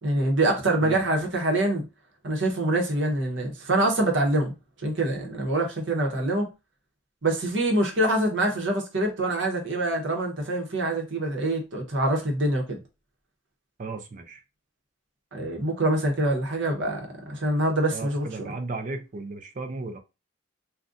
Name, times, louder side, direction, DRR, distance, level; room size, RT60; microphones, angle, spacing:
voice 1, 0.0-1.8 2.2-4.5 4.8-6.5 7.2-12.8 15.3-18.5, right 1 dB, 60° right, 0.9 m, -25 dB
voice 2, 13.8-14.4 17.9-20.0, right 3 dB, 40° right, 0.4 m, -35 dB
3.7 x 2.2 x 2.5 m
head